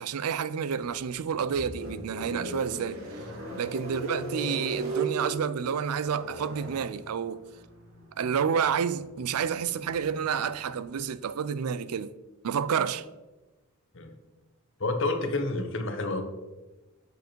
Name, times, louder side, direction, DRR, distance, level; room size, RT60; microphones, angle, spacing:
voice 1, 0.0-3.3 3.6-7.4 8.2-12.1 12.4-13.1, right 7 dB, 90° right, 0.4 m, -29 dB
sound 1, 0.9-11.0, right 2 dB, 65° right, 1.9 m, -39 dB
voice 2, 14.8-16.2, left 2 dB, 55° left, 1.0 m, -29 dB
7.7 x 5.2 x 4.5 m
head